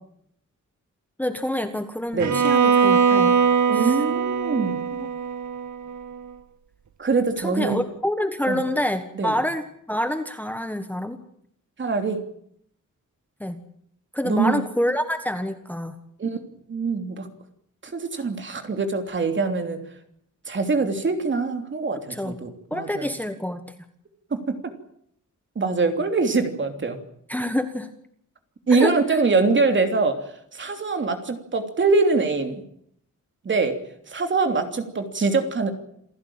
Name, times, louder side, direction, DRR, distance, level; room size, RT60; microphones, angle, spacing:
voice 1, 1.2-3.4 3.7-4.0 5.0-5.1 7.4-11.2 13.4-13.6 14.1-15.9 22.1-22.4 22.7-23.7 27.3-27.9 28.7-29.2, left 1 dB, 5° left, 8 dB, 1.4 m, -27 dB
Bowed string instrument, 2.2-6.2, right 6 dB, 65° right, 1.9 m, -21 dB
voice 2, 3.7-4.8 7.0-7.8 8.5-8.6 9.2-9.3 11.8-12.2 14.2-14.6 16.2-16.4 16.7-17.3 17.8-19.8 20.5-23.1 24.3-24.6 25.5-27.0 28.7-30.2 30.5-32.6 33.4-33.8 34.1-35.7, right 4 dB, 35° right, 6 dB, 3.1 m, -23 dB
28.0 x 16.0 x 8.8 m, 0.69 s
wide cardioid pair, 180°, 31 cm